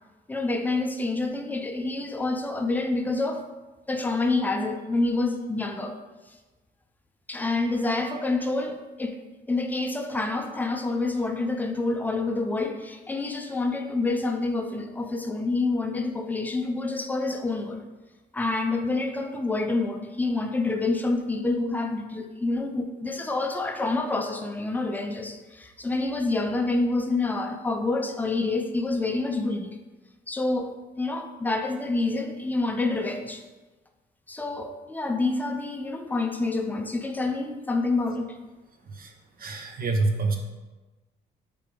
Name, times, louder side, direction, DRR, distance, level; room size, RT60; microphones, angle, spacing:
voice 1, 0.3-3.4 3.9-6.0 7.3-17.8 18.3-29.7 30.3-33.4 34.3-38.4, left 3 dB, 10° left, 5 dB, 0.4 m, -27 dB
voice 2, 39.4-40.4, right 3 dB, 50° right, 4 dB, 0.6 m, -26 dB
3.4 x 3.4 x 4.7 m, 1.2 s
cardioid pair, 90°, 20 cm